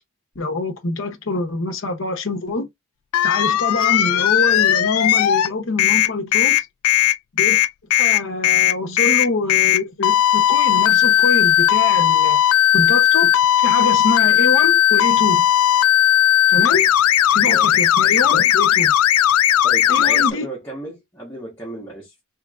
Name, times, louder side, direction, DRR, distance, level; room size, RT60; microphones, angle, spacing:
voice 1, 0.4-2.7 3.2-6.6 7.3-7.6 8.0-12.4 12.7-13.3 13.6-15.5 16.5-16.9 17.3-18.9 19.9-20.5, left 3 dB, 55° left, 0.8 m, -25 dB
sound 1, 3.1-5.5 5.8-20.3, left 11 dB, 75° left, 0.3 m, -16 dB
voice 2, 19.6-22.2, right 1 dB, 10° left, 1.3 m, -34 dB
3.4 x 3.2 x 2.4 m
head